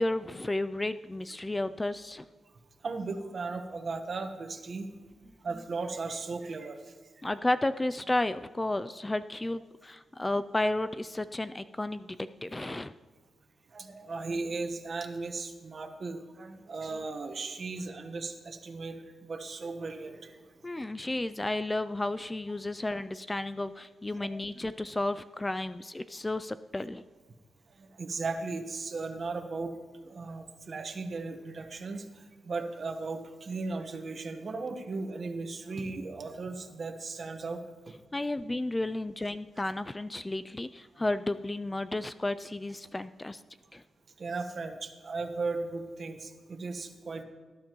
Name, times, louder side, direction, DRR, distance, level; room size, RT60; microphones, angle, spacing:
voice 1, 0.0-2.2 7.2-12.9 20.6-27.0 38.1-43.4 43.7-43.8, left 2 dB, 15° left, 12 dB, 0.3 m, -32 dB
voice 2, 2.8-4.9 5.4-6.9 13.7-20.4 24.1-24.3 27.8-29.7 30.0-37.6 37.9-38.0 44.2-47.2, right 3 dB, 50° right, 6 dB, 1.3 m, -36 dB
18.5 x 11.5 x 3.1 m, 1.4 s
cardioid pair, 95°, 0 cm